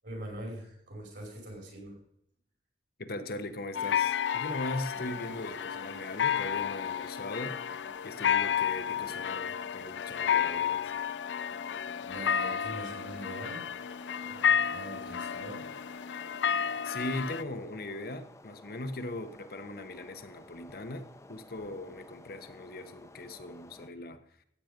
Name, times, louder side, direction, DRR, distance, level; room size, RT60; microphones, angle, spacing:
voice 1, 0.0-2.0 12.0-13.7 14.2-15.6, right 1 dB, 65° right, 5.4 m, -43 dB
voice 2, 3.0-10.9 16.8-24.2, left 2 dB, 60° left, 1.1 m, -39 dB
sound 1, 3.7-17.4, left 8 dB, 85° left, 0.4 m, -31 dB
sound 2, 4.9-23.9, left 1 dB, 15° left, 0.9 m, -54 dB
15.5 x 8.6 x 5.2 m
head